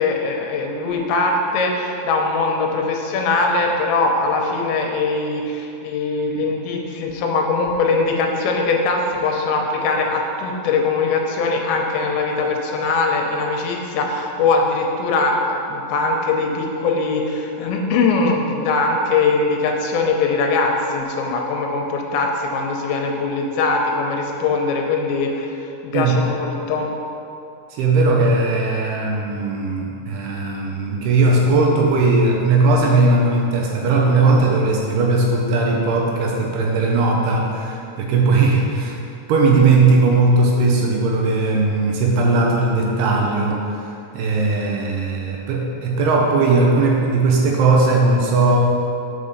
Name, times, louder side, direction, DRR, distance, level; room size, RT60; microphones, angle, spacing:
voice 1, 0.0-26.9, left 3 dB, 85° left, 1 dB, 3.1 m, -21 dB
voice 2, 27.7-39.0 39.3-48.6, right 3 dB, 75° right, -1 dB, 2.6 m, -18 dB
6.8 x 5.6 x 6.5 m, 2.6 s
omnidirectional pair, 5.0 m